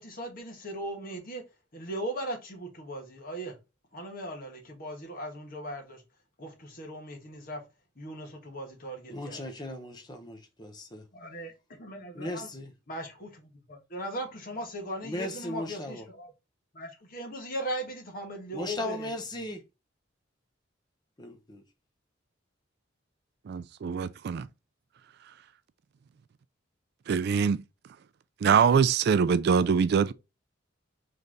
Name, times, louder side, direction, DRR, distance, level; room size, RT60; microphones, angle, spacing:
voice 1, 0.0-1.4 1.7-3.5 3.9-6.0 6.4-7.6 8.0-9.5 11.1-11.5 11.8-12.5 12.9-16.3 16.7-19.1, right 1 dB, 50° left, 1.5 m, -38 dB
voice 2, 9.1-11.0 12.1-12.7 15.0-16.0 18.5-19.6 21.2-21.6, left 1 dB, 20° left, 0.9 m, -37 dB
voice 3, 23.5-24.5 27.1-27.6 28.4-30.1, right 6 dB, 55° right, 0.3 m, -23 dB
4.1 x 3.3 x 3.8 m
head